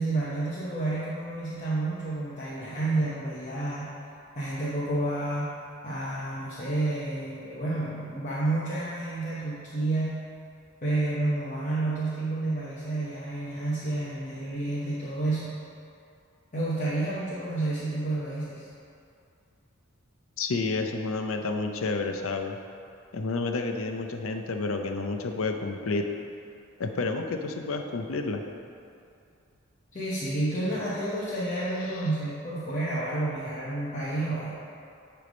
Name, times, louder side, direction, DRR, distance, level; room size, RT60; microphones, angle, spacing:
voice 1, 0.0-3.9 4.3-5.5 5.8-10.2 10.8-15.5 16.5-18.7 29.9-34.5, right 2 dB, 35° left, -9 dB, 1.0 m, -30 dB
voice 2, 20.4-22.6 23.1-26.0 26.8-28.4, left 3 dB, 75° left, 5 dB, 0.6 m, -30 dB
9.6 x 3.5 x 5.1 m, 2.5 s
head